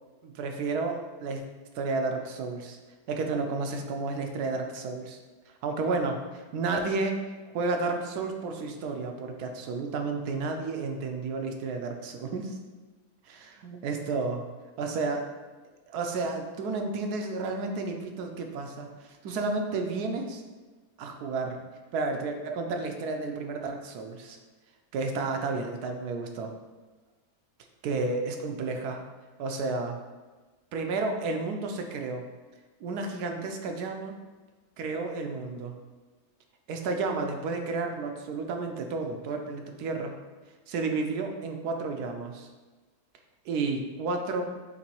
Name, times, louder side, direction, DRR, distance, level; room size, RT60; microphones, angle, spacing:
voice 1, 0.2-1.4 1.7-2.8 3.1-5.2 5.6-6.2 6.5-7.2 7.5-12.6 13.3-14.4 14.8-15.3 15.9-18.9 19.2-20.4 21.0-21.6 21.9-24.4 24.9-26.5 27.8-29.0 29.4-30.0 30.7-32.2 32.8-34.1 34.8-35.8 36.7-40.1 40.7-42.5 43.5-44.4, right 3 dB, 80° right, 4 dB, 1.1 m, -31 dB
6.9 x 2.6 x 2.9 m, 1.3 s
omnidirectional pair, 1.7 m